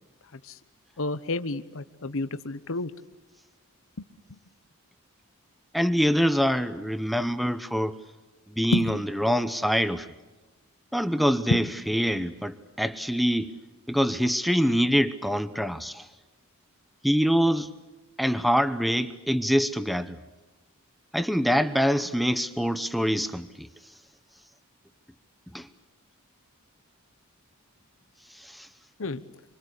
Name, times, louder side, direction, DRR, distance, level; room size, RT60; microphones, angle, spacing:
voice 1, 1.0-2.9 4.0-4.4 8.7-8.9 11.5-11.6 29.0-29.2, left 2 dB, 65° left, 1.0 m, -30 dB
voice 2, 5.7-8.0 8.5-10.1 10.9-13.6 13.9-16.1 17.0-17.7 18.2-20.2 21.1-23.7 25.5-25.7 28.3-28.7, equal, ahead, 0.9 m, -25 dB
27.0 x 25.5 x 8.2 m
head